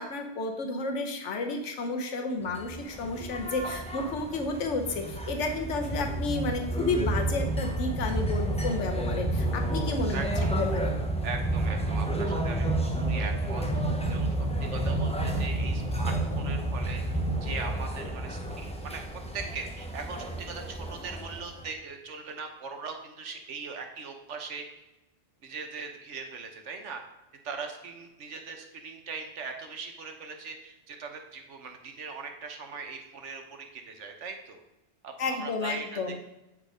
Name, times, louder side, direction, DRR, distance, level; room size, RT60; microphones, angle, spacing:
voice 1, 0.0-10.2 10.4-10.9 35.2-36.2, left 3 dB, 85° left, 4 dB, 1.2 m, -31 dB
sound 1, 2.5-21.7, right 1 dB, 5° left, 0.6 m, -30 dB
voice 2, 10.1-10.6 11.2-14.3 14.6-17.0 17.4-24.6 25.4-27.0 27.4-34.6 35.0-36.2, right 5 dB, 80° right, 5 dB, 1.3 m, -40 dB
sound 2, 10.4-17.4, right 2 dB, 35° right, 0.8 m, -45 dB
8.4 x 4.5 x 5.0 m, 0.96 s
omnidirectional pair, 1.2 m